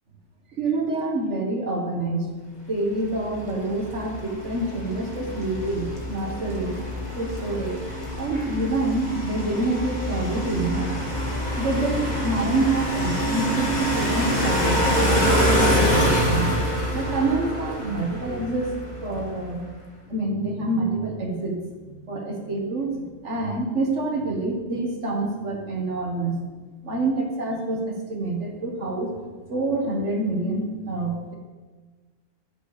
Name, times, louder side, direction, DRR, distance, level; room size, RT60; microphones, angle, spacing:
voice 1, 0.5-2.3 2.7-6.8 7.2-7.8 8.1-16.5 16.9-19.7 20.1-21.6 21.8-26.4 26.8-29.2 29.5-31.3, right 2 dB, 50° right, 1 dB, 2.0 m, -27 dB
sound 1, 3.1-19.3, equal, 25° left, 2.3 m, -26 dB
11.0 x 7.1 x 6.7 m, 1.4 s
omnidirectional pair, 1.6 m